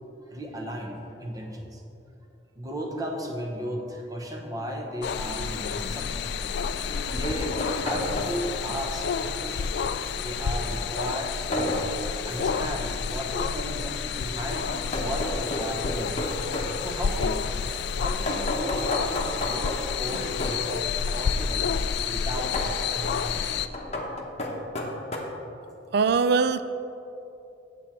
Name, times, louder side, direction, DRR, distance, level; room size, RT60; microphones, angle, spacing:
voice 1, 0.3-1.8 2.6-6.3 7.1-9.7 10.2-11.9 12.2-16.1 16.8-21.7 22.0-23.6, equal, 20° right, 1 dB, 1.0 m, -35 dB
sound 1, 5.0-23.7, left 6 dB, 60° left, 0.3 m, -30 dB
sound 2, 6.7-8.6 11.5-12.0 14.7-16.8 18.3-20.7 22.5-22.8 23.7-25.2, left 1 dB, 35° left, 1.0 m, -31 dB
voice 2, 25.9-26.6, right 5 dB, 60° right, 12 dB, 0.4 m, -21 dB
8.4 x 7.4 x 4.3 m, 2.8 s
head